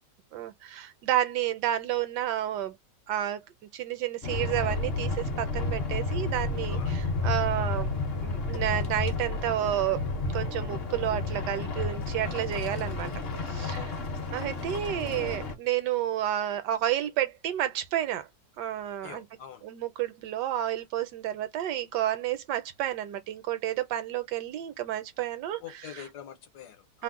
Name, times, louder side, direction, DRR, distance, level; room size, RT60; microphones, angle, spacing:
voice 1, 0.3-2.8 3.1-3.4 3.7-7.9 8.2-10.0 10.3-13.1 13.5-13.8 14.3-18.3 18.6-19.3 19.6-26.0 26.9-27.0, right 12 dB, 75° right, 1.2 m, -30 dB
sound 1, 4.2-15.5, left 3 dB, 55° left, 0.7 m, -31 dB
voice 2, 6.7-7.4 12.3-12.4 13.7-14.1 19.0-19.6 25.6-27.0, left 10 dB, 70° left, 1.2 m, -45 dB
3.0 x 2.1 x 3.5 m
omnidirectional pair, 1.9 m